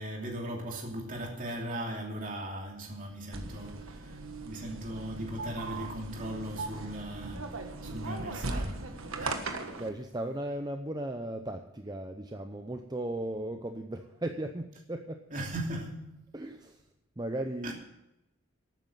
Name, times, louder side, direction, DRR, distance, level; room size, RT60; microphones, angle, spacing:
voice 1, 0.0-8.9 9.2-9.6 15.3-16.2 17.6-17.7, right 1 dB, 40° right, 2.8 m, -38 dB
sound 1, 3.3-9.9, right 3 dB, 75° right, 1.5 m, -38 dB
voice 2, 9.8-15.2 16.3-16.8 17.2-17.7, right 1 dB, 20° right, 0.6 m, -36 dB
12.0 x 9.2 x 7.5 m
head